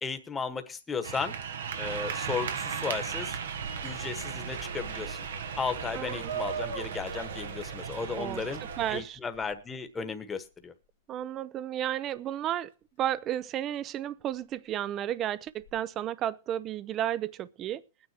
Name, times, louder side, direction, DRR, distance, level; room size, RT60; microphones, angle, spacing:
voice 1, 0.0-1.4 1.8-3.4 3.8-5.3 5.6-8.6 8.9-10.7, left 5 dB, 15° left, 1.3 m, -35 dB
sound 1, 1.0-9.0, right 6 dB, 85° right, 1.3 m, -36 dB
voice 2, 5.9-6.3 8.2-8.4 8.8-9.2 11.1-12.7 13.0-17.8, right 11 dB, 30° right, 0.6 m, -32 dB
sound 2, 9.0-9.8 10.4-10.9 11.2-11.3 12.1-12.2 13.1-13.2 13.5-13.6 14.2-14.4 14.7-14.8 15.0-15.1 15.4-15.8, left 6 dB, 85° left, 1.8 m, -54 dB
21.5 x 9.7 x 2.9 m
hypercardioid pair, 130°, 0 cm